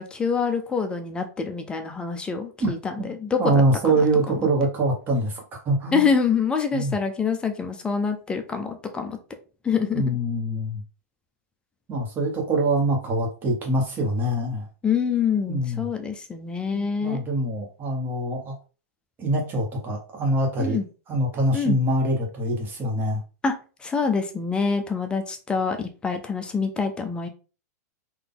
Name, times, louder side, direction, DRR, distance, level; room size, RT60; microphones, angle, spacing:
voice 1, 0.0-2.9 3.2-3.6 4.0-4.1 5.9-9.2 9.6-10.1 14.8-17.2 20.6-20.8 21.5-21.8 23.4-23.5 23.8-27.3, left 5 dB, 10° left, 6 dB, 0.5 m, -25 dB
voice 2, 2.6-5.4 5.6-6.1 6.7-6.9 9.9-10.8 11.9-14.6 15.5-15.8 16.7-18.6 19.2-20.8 21.1-23.2, right 1 dB, 20° right, 0 dB, 1.4 m, -24 dB
4.0 x 2.7 x 3.8 m, 0.35 s
hypercardioid pair, 150°, 9 cm